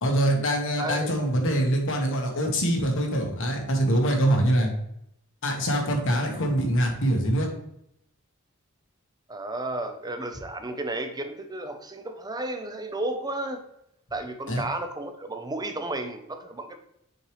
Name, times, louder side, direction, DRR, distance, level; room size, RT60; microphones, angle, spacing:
voice 1, 0.0-4.7 5.4-7.5 14.5-14.6, right 1 dB, 60° left, 2 dB, 1.4 m, -24 dB
voice 2, 0.8-1.1 9.3-13.6 14.1-16.8, right 2 dB, 20° right, 6 dB, 0.7 m, -33 dB
6.5 x 4.6 x 3.2 m, 0.77 s
head